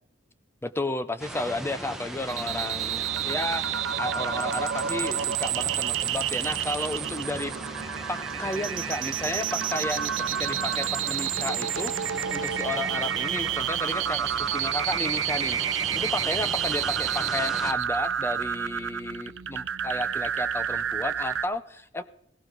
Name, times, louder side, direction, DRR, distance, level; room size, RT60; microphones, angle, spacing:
voice 1, 0.6-7.5 7.8-10.1 10.4-22.0, left 2 dB, 15° left, 12 dB, 0.6 m, -33 dB
sound 1, 1.2-17.7, right 1 dB, ahead, 1.5 m, -39 dB
sound 2, 2.3-21.4, right 9 dB, 85° right, 0.7 m, -29 dB
17.0 x 17.0 x 4.0 m, 0.68 s
head